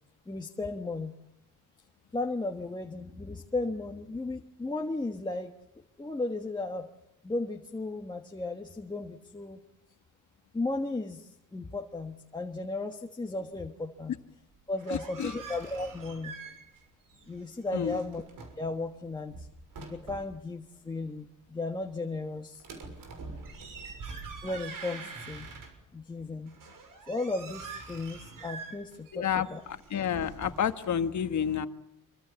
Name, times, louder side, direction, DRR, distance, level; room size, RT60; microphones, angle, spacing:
voice 1, 0.3-1.1 2.1-5.5 6.0-6.9 7.2-9.6 10.5-14.1 14.7-16.3 17.3-18.2 18.6-19.5 19.9-22.6 24.4-25.5 25.9-26.6 27.1-29.6, left 2 dB, 15° left, 2 dB, 1.4 m, -35 dB
sound 1, 14.6-16.8 17.1-18.7 19.1-20.4 22.6-26.0 26.5-30.9, right 4 dB, 85° right, 6.5 m, -45 dB
voice 2, 14.9-15.3 17.7-18.0 29.1-31.7, left 8 dB, 60° left, 10 dB, 1.4 m, -30 dB
27.0 x 25.0 x 7.1 m, 0.84 s
wide cardioid pair, 175°, 32 cm